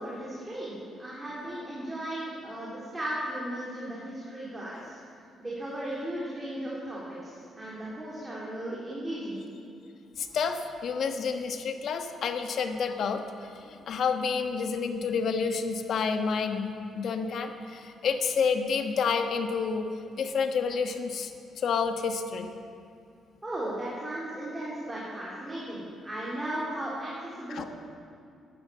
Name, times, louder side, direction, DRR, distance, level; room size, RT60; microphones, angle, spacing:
voice 1, 0.0-9.4 23.4-27.7, right 1 dB, 15° right, -7 dB, 3.5 m, -36 dB
voice 2, 10.2-19.9 20.2-21.3 21.6-22.5 27.5-27.6, left 5 dB, 65° left, 6 dB, 1.3 m, -29 dB
12.5 x 12.0 x 7.5 m, 2.5 s
cardioid pair, 90°, 0 cm